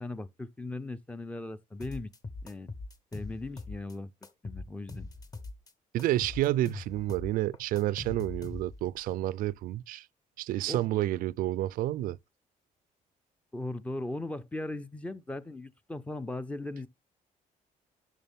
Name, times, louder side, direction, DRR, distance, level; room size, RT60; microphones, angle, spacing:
voice 1, 0.0-2.1 2.4-2.7 3.1-4.1 4.4-5.1 10.7-10.8 13.5-16.9, left 2 dB, 10° left, 0.5 m, -38 dB
sound 1, 1.8-3.9 4.2-5.7 6.0-8.9, left 3 dB, 25° left, 0.9 m, -42 dB
voice 2, 5.9-10.1 10.4-12.2, right 14 dB, 80° right, 0.4 m, -30 dB
11.0 x 6.1 x 3.5 m
cardioid pair, 170°, 14 cm